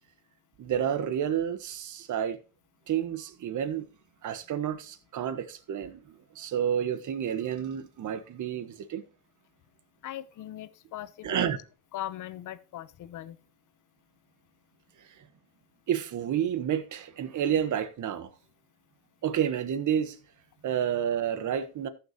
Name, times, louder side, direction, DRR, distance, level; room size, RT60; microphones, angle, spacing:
voice 1, 0.6-2.4 2.9-3.9 4.2-6.0 6.3-9.0 11.2-11.6 15.9-18.3 19.2-20.2 20.6-21.9, right 9 dB, 50° right, 1.3 m, -30 dB
voice 2, 10.0-11.6 11.9-13.4, left 13 dB, 50° left, 0.9 m, -39 dB
15.0 x 6.8 x 3.0 m
supercardioid pair, 95°, 39 cm